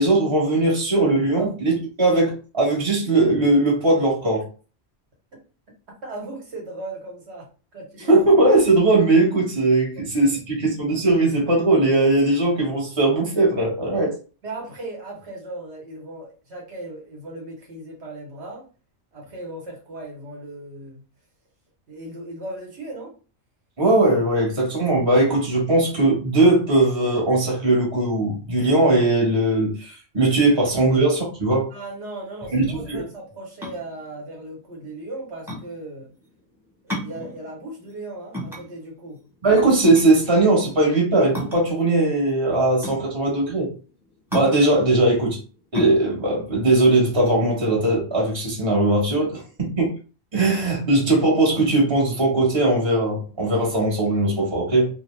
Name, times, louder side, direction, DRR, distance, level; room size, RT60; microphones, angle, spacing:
voice 1, 0.0-4.4 8.1-14.1 23.8-31.7 32.5-33.0 39.4-43.7 44.3-45.4 45.7-49.4 49.8-49.9 50.3-54.9, right 2 dB, 25° right, 1.0 m, -19 dB
voice 2, 6.0-8.3 14.4-18.7 19.1-21.0 21.9-23.2 30.6-30.9 31.7-36.1 36.8-39.2 49.2-49.3, right 2 dB, 75° right, 1.2 m, -37 dB
sound 1, 33.5-47.8, equal, ahead, 0.9 m, -34 dB
2.6 x 2.1 x 3.1 m
omnidirectional pair, 1.2 m